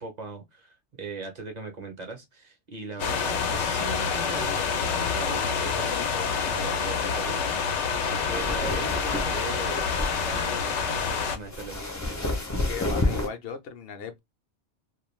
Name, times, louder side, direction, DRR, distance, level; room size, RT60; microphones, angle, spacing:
voice 1, 0.0-9.8 10.1-11.9, right 3 dB, 45° right, 0.7 m, -39 dB
sound 1, 3.0-11.4, left 6 dB, 85° left, 0.9 m, -27 dB
sound 2, 8.2-13.3, left 2 dB, 25° left, 0.4 m, -30 dB
voice 2, 12.6-14.2, left 7 dB, 65° left, 0.8 m, -38 dB
2.4 x 2.3 x 3.0 m
omnidirectional pair, 1.2 m